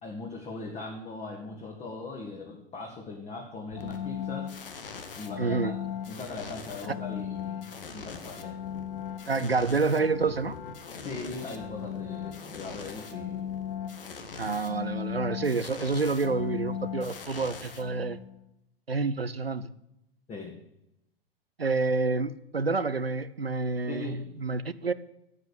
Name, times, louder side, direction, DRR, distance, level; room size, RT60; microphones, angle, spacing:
voice 1, 0.0-4.5 5.1-5.7 6.0-8.6 9.4-9.5 11.0-13.4 20.3-20.6 23.9-24.2, left 3 dB, 20° left, 2.1 m, -40 dB
sound 1, 3.7-18.4, left 8 dB, 65° left, 1.9 m, -38 dB
voice 2, 5.4-5.7 9.3-10.6 14.4-18.2 18.9-19.7 21.6-24.9, right 4 dB, 85° right, 0.7 m, -28 dB
12.5 x 8.1 x 8.7 m
figure-of-eight pair, 95°, 29 cm